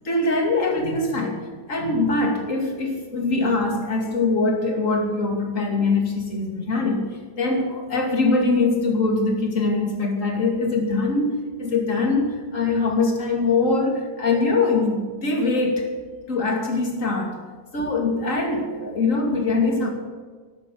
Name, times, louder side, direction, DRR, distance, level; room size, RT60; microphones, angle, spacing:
voice 1, 0.0-1.4 1.7-7.1 7.4-15.9 16.3-17.4 17.7-19.9, left 3 dB, 45° left, 1 dB, 2.9 m, -22 dB
12.5 x 12.0 x 6.6 m, 1.5 s
omnidirectional pair, 1.9 m